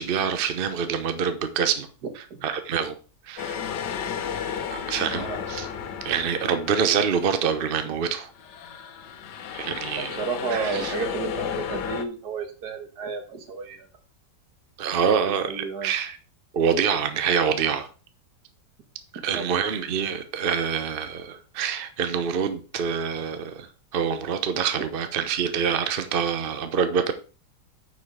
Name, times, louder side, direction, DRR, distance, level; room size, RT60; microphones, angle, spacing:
voice 1, 0.0-1.9 2.4-2.9 3.3-3.6 4.7-5.7 6.0-8.3 9.5-10.1 10.5-10.9 14.8-16.2 16.5-17.9 19.2-23.7 23.9-27.1, right 7 dB, 45° right, 9 dB, 0.8 m, -26 dB
sound 1, 3.4-7.9 8.3-12.0, left 7 dB, 80° left, 1.5 m, -33 dB
voice 2, 9.9-13.9 15.0-15.9 19.1-19.5, right 5 dB, 70° right, 6 dB, 1.8 m, -32 dB
9.6 x 4.8 x 4.8 m, 0.36 s
omnidirectional pair, 1.8 m